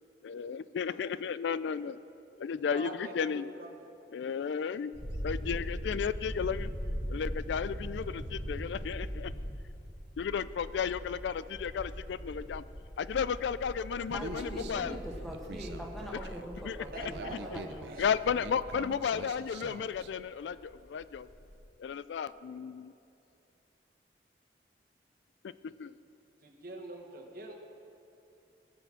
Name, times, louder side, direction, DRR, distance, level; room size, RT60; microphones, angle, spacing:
voice 1, 0.2-2.0 2.4-3.5 4.1-4.9 5.2-6.7 7.1-9.3 10.2-12.6 13.0-15.0 16.6-17.1 17.5-17.6 18.0-21.3 21.8-22.9 25.6-25.9, left 7 dB, 80° left, 16 dB, 0.3 m, -34 dB
voice 2, 2.7-3.9 16.9-17.4 17.9-18.0 26.4-27.5, right 2 dB, 55° right, 0 dB, 1.6 m, -44 dB
sound 1, 4.9-20.7 21.0-21.5, equal, 45° left, 2.8 m, -41 dB
voice 3, 14.1-17.9, equal, ahead, -2 dB, 1.6 m, -42 dB
Human voice, 14.1-20.1, right 3 dB, 75° right, 0.6 m, -46 dB
20.5 x 6.9 x 6.0 m, 2.7 s
head